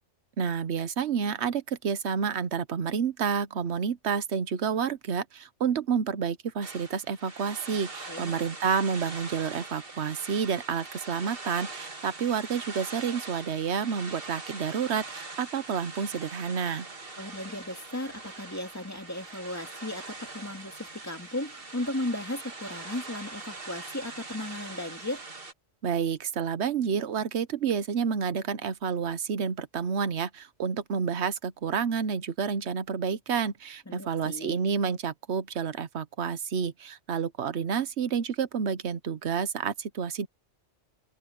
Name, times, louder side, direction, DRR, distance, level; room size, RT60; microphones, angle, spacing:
voice 1, 0.4-16.9 25.8-40.3, right 6 dB, 70° right, 1.2 m, -29 dB
sound 1, 6.6-25.5, right 3 dB, 50° right, 2.4 m, -42 dB
voice 2, 17.2-25.2 33.9-34.6, left 1 dB, 15° left, 2.4 m, -36 dB
open air
omnidirectional pair, 1.2 m